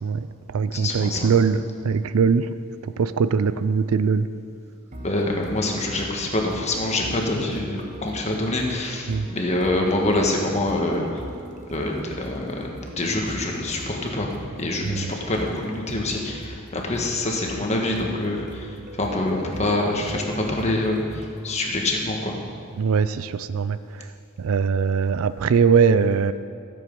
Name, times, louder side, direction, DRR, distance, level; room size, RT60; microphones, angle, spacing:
voice 1, 0.0-2.6 2.8-4.3 9.1-9.3 14.9-15.0 22.8-24.1 24.4-26.3, right 5 dB, 75° right, 14 dB, 0.4 m, -21 dB
voice 2, 0.7-1.3 4.9-11.1 11.7-22.4, left 2 dB, 30° left, 0 dB, 1.4 m, -26 dB
sound 1, 4.9-21.6, right 1 dB, 35° right, 1.0 m, -41 dB
14.0 x 7.7 x 5.3 m, 2.3 s
head